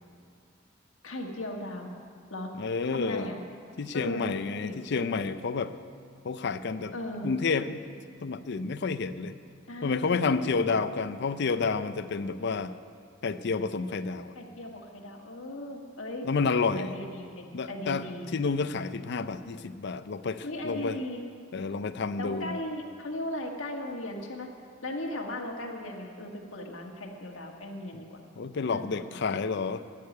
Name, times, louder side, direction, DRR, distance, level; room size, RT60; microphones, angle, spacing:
voice 1, 1.0-1.9 2.3-2.5 2.9-3.4 3.9-4.3 4.6-5.1 6.9-7.4 9.7-10.6 14.3-16.3 16.8-18.3 20.4-21.2 22.2-24.5 24.8-28.2 28.6-29.2, left 1 dB, 80° left, 1 dB, 1.7 m, -37 dB
voice 2, 2.6-3.3 3.8-5.7 6.2-6.9 7.2-7.8 8.2-9.3 9.8-12.7 13.2-14.3 16.2-17.0 17.5-21.0 21.5-22.6 28.4-29.8, left 4 dB, 60° left, 12 dB, 0.5 m, -30 dB
13.0 x 6.7 x 9.3 m, 2.3 s
head